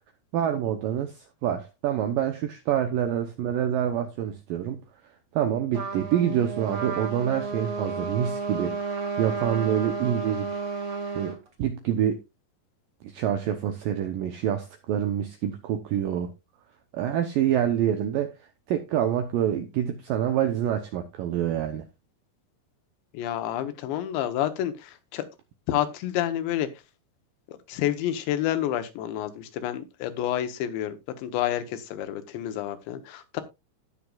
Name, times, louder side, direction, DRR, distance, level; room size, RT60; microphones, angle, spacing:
voice 1, 0.3-4.8 5.3-10.5 11.2-12.2 13.0-16.3 16.9-18.3 18.7-21.9, right 10 dB, 80° right, 2.0 m, -27 dB
Trumpet, 5.7-11.4, right 5 dB, 35° right, 2.9 m, -32 dB
voice 2, 23.1-24.7 25.1-25.2 25.7-26.7 27.7-31.0 31.2-31.6 31.9-33.4, left 12 dB, 80° left, 3.3 m, -28 dB
17.5 x 6.5 x 2.4 m
omnidirectional pair, 5.1 m